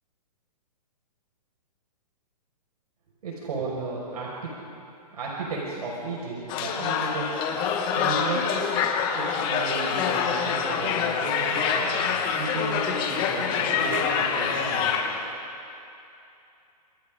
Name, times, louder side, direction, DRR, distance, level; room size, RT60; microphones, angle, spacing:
voice 1, 3.2-4.5 5.2-7.3 7.8-8.5 9.1-15.1, right 3 dB, 70° right, -4 dB, 5.6 m, -34 dB
sound 1, 6.5-15.3, left 6 dB, 20° left, 1.6 m, -26 dB
29.0 x 27.0 x 3.8 m, 2.7 s
hypercardioid pair, 160°, 21 cm